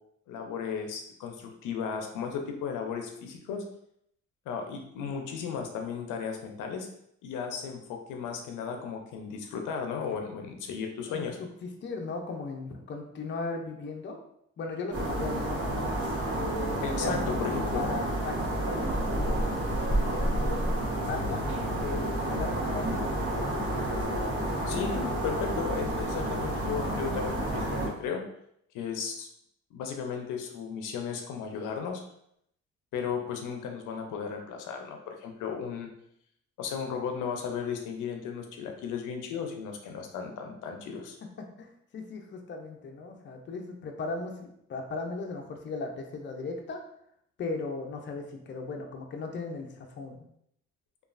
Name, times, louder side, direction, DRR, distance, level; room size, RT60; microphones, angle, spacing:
voice 1, 0.3-3.6 4.5-6.9 7.2-11.4 16.8-17.9 24.7-28.2 28.7-29.3 29.7-32.0 32.9-35.9 36.6-41.2, left 6 dB, 90° left, 3 dB, 0.5 m, -35 dB
voice 2, 11.1-14.2 14.6-15.9 16.3-19.4 19.9-21.4 21.8-23.8 41.4-46.8 47.4-50.3, left 3 dB, 40° left, 3 dB, 0.5 m, -38 dB
sound 1, 14.9-27.9, right 1 dB, 50° right, 1.1 m, -30 dB
3.0 x 2.3 x 2.4 m, 0.73 s
cardioid pair, 90°, 30 cm